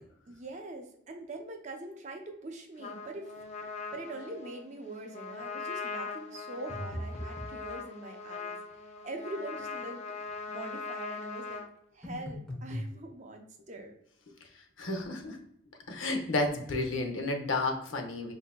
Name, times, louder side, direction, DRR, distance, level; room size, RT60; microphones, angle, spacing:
voice 1, 0.3-8.6 9.0-11.6 11.9-13.9, right 2 dB, 35° right, 3 dB, 0.6 m, -43 dB
Trumpet, 2.8-11.7, left 4 dB, 30° left, 0.4 m, -41 dB
sound 1, 6.7-7.6 12.0-12.9, equal, 5° left, 0.9 m, -38 dB
voice 2, 14.8-15.4 15.9-18.3, left 2 dB, 70° left, 4 dB, 0.7 m, -31 dB
5.4 x 2.7 x 2.2 m, 0.71 s
head